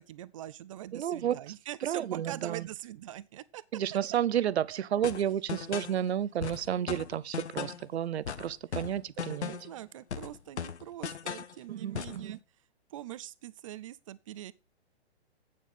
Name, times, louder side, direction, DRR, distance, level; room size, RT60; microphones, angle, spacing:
voice 1, 0.0-3.6 4.7-4.8 6.7-7.0 9.3-12.4 12.9-14.5, right 13 dB, 30° right, 0.5 m, -43 dB
voice 2, 0.9-1.5 1.8-2.7 3.7-9.5 11.7-12.4, right 10 dB, 70° right, 0.7 m, -31 dB
sound 1, 5.0-6.0 6.4-7.9 8.3-9.8 10.1-11.5 11.9-12.2, left 8 dB, 85° left, 0.9 m, -38 dB
8.6 x 6.6 x 5.2 m
hypercardioid pair, 140°, 33 cm